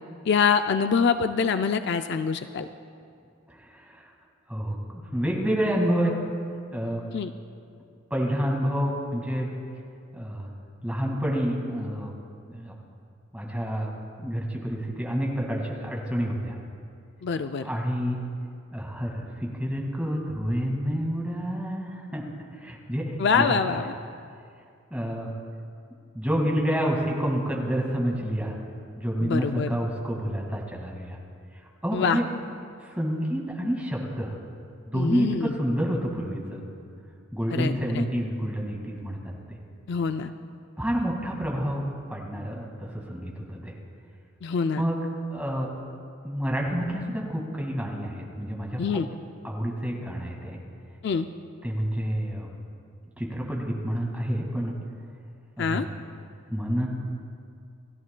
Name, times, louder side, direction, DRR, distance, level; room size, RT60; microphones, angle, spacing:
voice 1, 0.3-2.7 7.1-7.3 17.2-17.7 23.2-23.9 29.2-29.8 31.9-32.2 34.9-35.5 37.5-38.0 39.9-40.3 44.4-44.8 48.8-49.1 51.0-51.3 55.6-55.9, left 5 dB, 50° left, 9 dB, 0.4 m, -25 dB
voice 2, 3.5-4.1 4.5-6.1 6.7-7.0 8.1-9.5 10.1-10.5 10.8-12.1 12.5-12.7 13.3-16.6 17.6-18.2 18.7-22.2 22.5-23.6 24.9-25.3 26.1-28.6 29.0-31.2 31.8-32.2 32.8-34.3 34.9-36.7 37.3-39.2 40.8-41.8 42.1-43.8 44.8-45.0 45.3-45.7 46.2-49.0 49.4-50.6 51.6-52.5 53.2-54.7 55.6-55.9 56.5-56.9, equal, 5° right, -1 dB, 1.8 m, -28 dB
29.0 x 13.5 x 2.2 m, 2.4 s
head